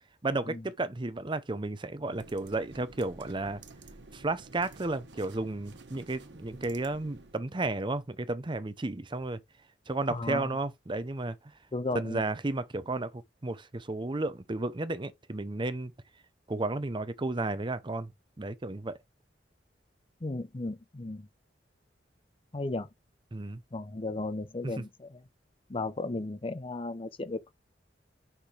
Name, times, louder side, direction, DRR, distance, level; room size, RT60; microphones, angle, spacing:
voice 1, 0.2-3.6 4.1-9.4 9.9-11.5 11.9-15.9 16.5-18.1 18.4-19.0 23.3-23.6 24.6-24.8, right 2 dB, 30° right, 0.7 m, -33 dB
sound 1, 2.0-7.4, right 3 dB, 85° right, 1.3 m, -51 dB
voice 2, 10.1-10.5 11.7-12.2 20.2-21.3 22.5-22.9 23.7-25.2 25.7-27.5, left 2 dB, 30° left, 0.6 m, -35 dB
6.1 x 6.0 x 3.3 m
head